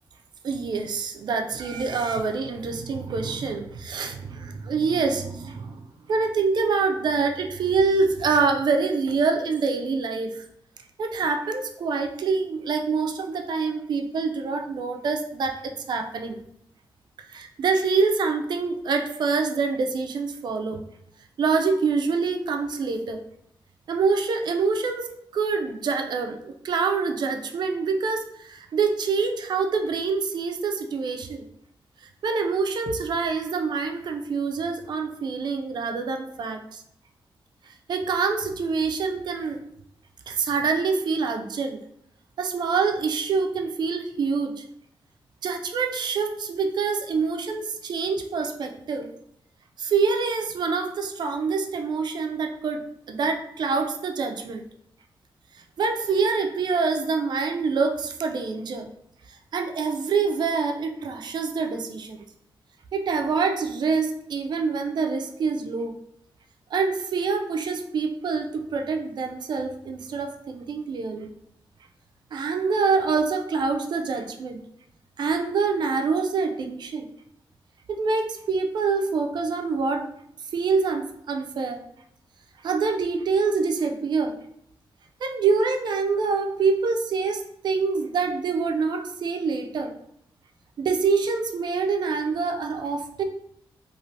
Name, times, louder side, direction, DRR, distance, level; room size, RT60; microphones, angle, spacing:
voice 1, 0.4-5.8 6.1-10.4 11.0-16.4 17.3-20.8 21.4-23.2 23.9-25.1 25.3-31.5 32.0-36.8 37.7-39.6 40.3-41.8 42.4-44.6 45.4-49.1 49.8-54.6 55.5-58.9 59.5-62.2 62.9-66.0 66.7-71.3 72.3-74.6 75.2-77.1 77.9-80.1 80.5-81.8 82.6-84.3 85.2-89.9 90.8-93.2, right 4 dB, 55° right, 5 dB, 0.3 m, -26 dB
3.2 x 2.4 x 2.6 m, 0.72 s
wide cardioid pair, 180°, 9 cm